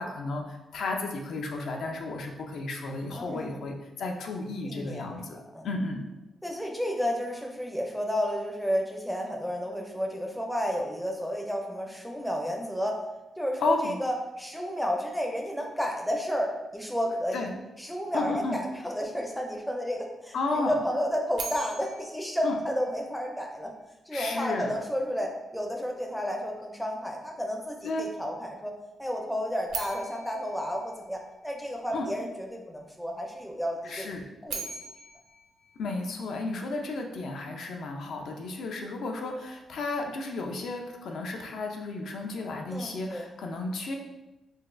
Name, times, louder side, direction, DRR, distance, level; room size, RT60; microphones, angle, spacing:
voice 1, 0.0-5.4 5.6-6.0 13.6-14.0 17.3-17.5 18.1-18.6 20.3-20.8 22.4-22.6 24.1-24.8 27.8-28.0 31.9-32.1 33.8-34.3 35.8-44.0, left 3 dB, 70° left, 2 dB, 0.4 m, -33 dB
voice 2, 3.2-3.5 4.6-5.0 5.3-5.7 6.4-13.0 13.4-17.4 17.8-20.3 20.6-23.7 24.1-28.7 29.0-34.1 34.4-34.6 42.7-43.3, equal, ahead, 1 dB, 0.4 m, -31 dB
sound 1, 21.4-23.5 29.7-31.8 34.2-36.6, right 5 dB, 70° right, 0.4 m, -41 dB
3.9 x 2.4 x 2.5 m, 1.0 s
cardioid pair, 135°, 0 cm